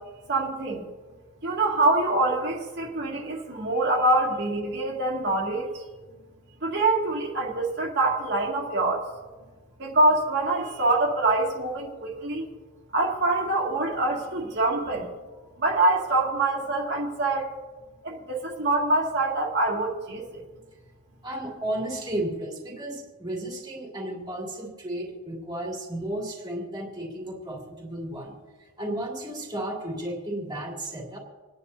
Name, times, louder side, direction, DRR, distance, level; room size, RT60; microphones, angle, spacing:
voice 1, 0.3-0.9 1.4-5.7 6.6-9.0 9.8-12.4 12.9-15.1 15.6-17.5 18.0-20.4, right 2 dB, 50° right, -4 dB, 2.1 m, -25 dB
voice 2, 3.3-3.6 21.2-31.2, right 1 dB, 20° right, -2 dB, 2.5 m, -34 dB
27.5 x 10.5 x 2.7 m, 1.3 s
head